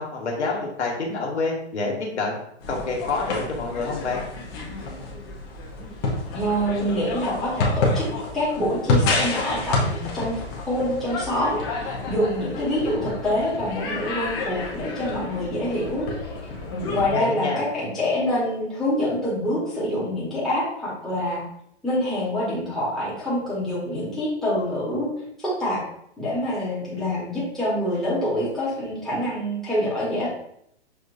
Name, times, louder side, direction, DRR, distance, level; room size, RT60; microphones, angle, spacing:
voice 1, 0.0-2.4 2.7-4.2 16.7-17.6, left 3 dB, 90° left, -1 dB, 1.4 m, -28 dB
sound 1, 2.6-17.1, left 2 dB, 20° left, 0.6 m, -29 dB
voice 2, 6.3-8.1 8.3-10.4 10.7-16.1 16.9-21.4 21.8-25.1 25.4-25.8 26.2-30.3, left 1 dB, ahead, -10 dB, 1.0 m, -26 dB
6.3 x 2.5 x 2.5 m, 0.72 s
hypercardioid pair, 160°, 33 cm